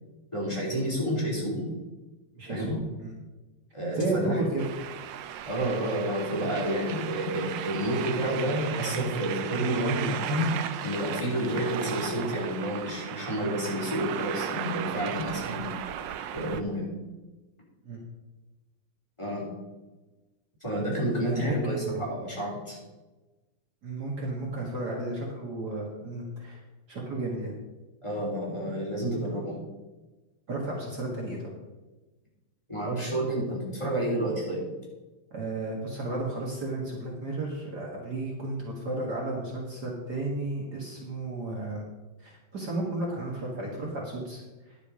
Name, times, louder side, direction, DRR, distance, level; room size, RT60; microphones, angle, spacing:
voice 1, 0.3-1.7 2.5-2.7 3.7-4.4 5.5-10.5 10.8-15.9 16.3-16.9 19.2-19.4 20.6-22.8 28.0-29.6 32.7-34.6, right 1 dB, 15° left, -5 dB, 3.7 m, -30 dB
voice 2, 2.4-3.1 4.0-4.6 15.5-15.6 17.8-18.0 21.3-22.0 23.8-26.6 26.9-27.5 30.5-31.5 35.3-41.8 42.2-44.4, right 2 dB, 50° right, -2 dB, 2.1 m, -33 dB
sound 1, 4.6-16.6, right 10 dB, 70° right, 1.2 m, -36 dB
11.0 x 8.0 x 5.1 m, 1.1 s
omnidirectional pair, 2.3 m